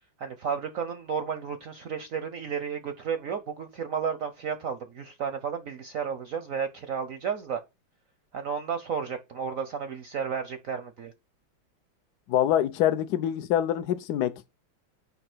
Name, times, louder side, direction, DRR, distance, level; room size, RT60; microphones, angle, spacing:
voice 1, 0.2-7.6 8.3-11.1, right 6 dB, 65° right, 0.8 m, -32 dB
voice 2, 12.3-14.3, left 11 dB, 70° left, 1.0 m, -25 dB
8.6 x 2.9 x 6.0 m
omnidirectional pair, 2.2 m